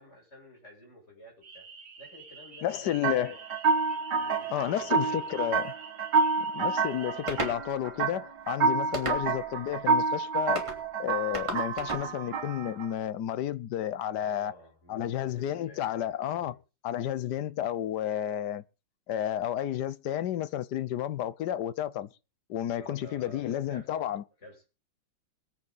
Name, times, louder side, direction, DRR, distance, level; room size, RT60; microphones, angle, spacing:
voice 1, 0.0-1.7 2.0-3.0 3.3-3.4 4.2-5.3 14.1-16.0 16.3-16.6 22.8-24.0 24.4-24.8, equal, 35° left, 8.1 m, -52 dB
sound 1, 1.4-7.5, right 5 dB, 45° right, 1.8 m, -49 dB
voice 2, 2.6-3.4 4.5-5.8 6.4-10.6 11.0-14.5 14.9-16.6 16.8-18.6 19.1-22.1 22.5-24.2, left 11 dB, 70° left, 1.3 m, -31 dB
sound 2, 3.0-12.9, right 4 dB, 65° right, 2.1 m, -29 dB
sound 3, 7.3-7.6 8.9-9.5 10.6-10.8 11.3-12.1, right 1 dB, 15° right, 3.2 m, -34 dB
22.0 x 8.7 x 4.0 m
omnidirectional pair, 2.0 m